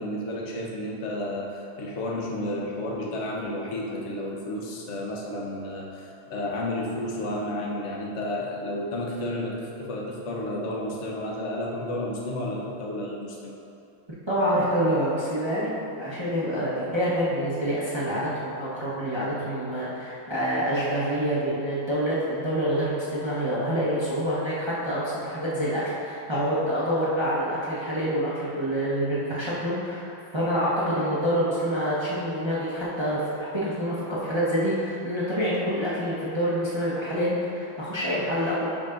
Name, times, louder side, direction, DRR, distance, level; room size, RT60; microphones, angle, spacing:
voice 1, 0.0-13.6, left 1 dB, 60° left, -2 dB, 0.7 m, -32 dB
voice 2, 14.3-30.1 30.3-38.7, equal, 30° right, -8 dB, 0.5 m, -27 dB
10.0 x 5.1 x 2.5 m, 2.6 s
omnidirectional pair, 2.3 m